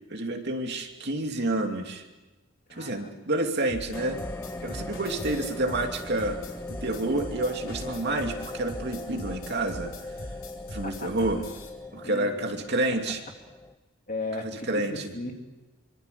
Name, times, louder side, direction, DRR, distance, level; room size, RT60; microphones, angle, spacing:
voice 1, 0.1-2.0 2.7-4.2 4.6-6.4 6.8-9.9 10.7-11.4 11.9-13.2 14.7-14.9, right 2 dB, 50° right, 3 dB, 2.7 m, -29 dB
voice 2, 2.7-3.1 4.5-4.9 9.1-9.5 10.8-11.3 12.0-12.5 14.1-15.3, left 2 dB, 40° left, 2 dB, 3.2 m, -37 dB
sound 1, 3.7-11.7, left 1 dB, 60° left, 4.1 m, -41 dB
sound 2, 3.9-13.7, left 2 dB, 10° left, 0.8 m, -40 dB
25.5 x 24.5 x 6.9 m, 1.1 s
head